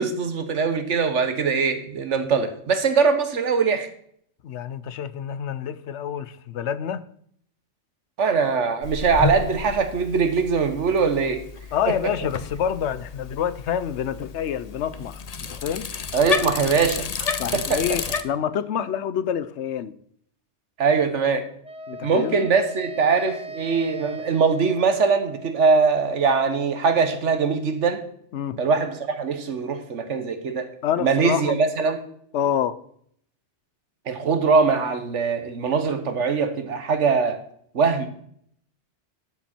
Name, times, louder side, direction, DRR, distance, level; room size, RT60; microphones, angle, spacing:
voice 1, 0.0-3.9 8.2-11.4 11.9-12.0 16.1-17.8 20.8-21.5 22.0-28.0 28.6-30.7 31.0-32.0 34.1-37.4 37.7-38.1, right 5 dB, 80° right, 1.5 m, -22 dB
voice 2, 4.4-7.0 11.7-15.9 17.4-19.9 21.9-22.5 28.3-28.6 30.8-31.6 32.3-32.8, left 9 dB, 75° left, 0.9 m, -27 dB
Bicycle, 8.8-18.2, left 5 dB, 40° left, 0.6 m, -31 dB
Wind instrument woodwind instrument, 21.6-25.8, right 1 dB, 10° right, 0.5 m, -39 dB
13.0 x 7.2 x 4.4 m
omnidirectional pair, 1.2 m